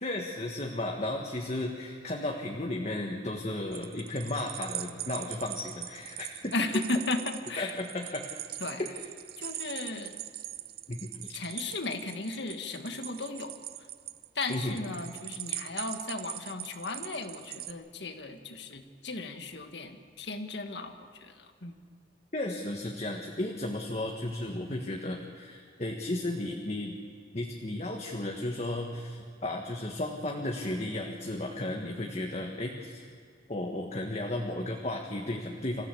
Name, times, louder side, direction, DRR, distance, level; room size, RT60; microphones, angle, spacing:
voice 1, 0.0-6.5 7.6-8.2 8.8-9.0 10.9-11.3 14.5-14.8 22.3-27.0 27.3-33.1 33.5-35.8, left 1 dB, 35° left, 1 dB, 1.6 m, -34 dB
sound 1, 3.7-17.7, right 13 dB, 55° right, 0.7 m, -41 dB
voice 2, 6.5-7.8 8.6-8.8 9.4-10.2 11.3-13.6 14.4-21.7, left 2 dB, 75° left, 6 dB, 1.8 m, -35 dB
26.0 x 15.5 x 8.5 m, 2.2 s
head